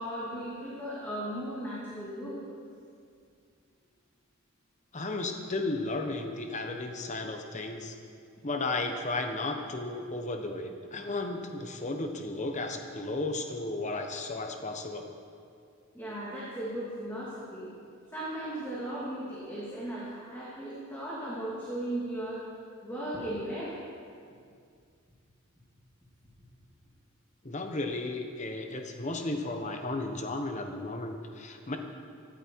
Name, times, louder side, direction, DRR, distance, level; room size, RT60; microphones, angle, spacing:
voice 1, 0.0-2.4 15.9-17.7 18.1-22.4 22.8-23.8, right 1 dB, 10° left, -8 dB, 2.5 m, -36 dB
voice 2, 4.9-8.0 8.4-15.1 27.4-31.8, left 2 dB, 35° left, 5 dB, 1.1 m, -34 dB
17.0 x 13.5 x 4.6 m, 2.3 s
head